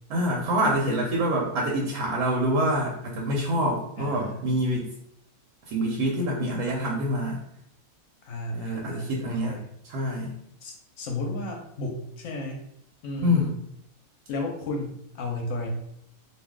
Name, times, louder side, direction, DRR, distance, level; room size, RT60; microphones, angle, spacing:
voice 1, 0.1-4.9 5.7-7.4 8.5-9.6 9.9-10.3 13.2-13.5, equal, 85° right, -2 dB, 1.1 m, -26 dB
voice 2, 4.0-4.4 8.2-9.7 10.6-12.6 13.0-13.5 14.3-15.7, left 2 dB, 65° left, 2 dB, 0.8 m, -33 dB
2.5 x 2.3 x 3.5 m, 0.73 s
omnidirectional pair, 1.6 m